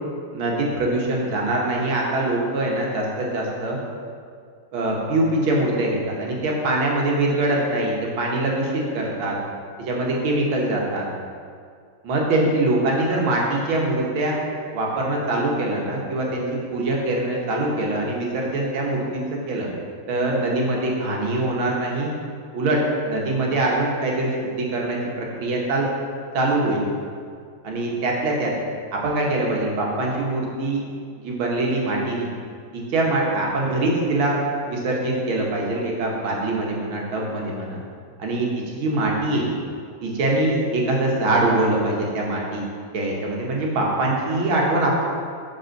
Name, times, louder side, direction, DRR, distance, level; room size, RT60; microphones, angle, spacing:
voice 1, 0.3-3.8 4.7-9.4 9.8-11.1 12.0-14.4 14.7-19.7 20.1-22.1 22.5-25.9 26.3-26.8 27.6-28.5 28.9-30.8 31.2-32.3 32.7-34.4 34.7-37.8 38.2-39.5 40.0-42.6 42.9-45.0, right 2 dB, 80° right, -2 dB, 1.9 m, -23 dB
5.1 x 4.9 x 6.3 m, 2.2 s
omnidirectional pair, 2.2 m